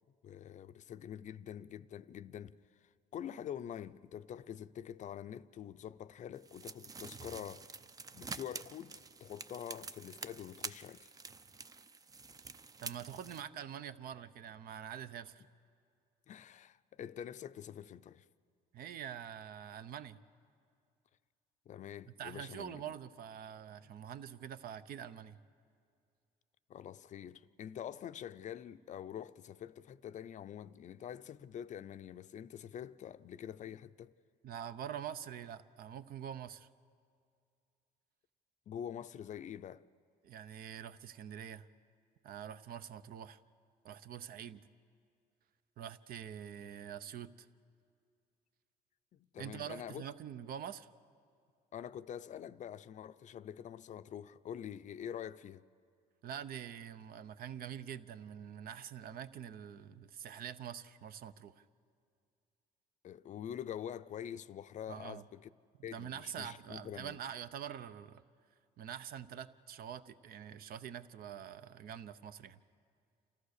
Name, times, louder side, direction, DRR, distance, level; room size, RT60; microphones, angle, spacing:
voice 1, 0.2-2.6 2.8-7.8 8.1-11.1 16.3-18.3 21.7-22.9 26.7-34.1 38.7-39.8 49.1-50.0 51.7-55.6 63.0-65.5 65.8-67.2, left 9 dB, 45° left, 0.5 m, -46 dB
sound 1, 6.4-13.4, right 4 dB, 20° right, 0.5 m, -48 dB
voice 2, 12.8-15.4 18.7-20.2 22.2-25.4 34.4-36.7 40.2-41.7 42.2-43.4 43.8-44.6 45.8-47.5 49.4-50.9 56.2-61.6 64.9-65.2 65.8-68.2 68.8-72.6, right 9 dB, 60° right, 0.7 m, -45 dB
28.0 x 14.5 x 6.6 m
cardioid pair, 110°, 17 cm